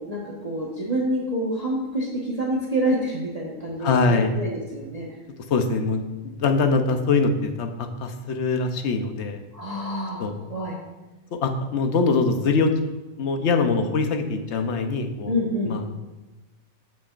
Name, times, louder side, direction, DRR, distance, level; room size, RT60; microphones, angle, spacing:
voice 1, 0.0-5.1 9.5-10.2 10.5-10.8 15.3-15.7, equal, 25° right, -5 dB, 1.3 m, -27 dB
voice 2, 3.8-4.3 5.5-9.4 10.2-10.3 11.3-12.8 13.2-15.3 15.7-15.8, left 4 dB, 55° left, 7 dB, 0.9 m, -23 dB
15.0 x 6.0 x 2.5 m, 1.1 s
omnidirectional pair, 1.6 m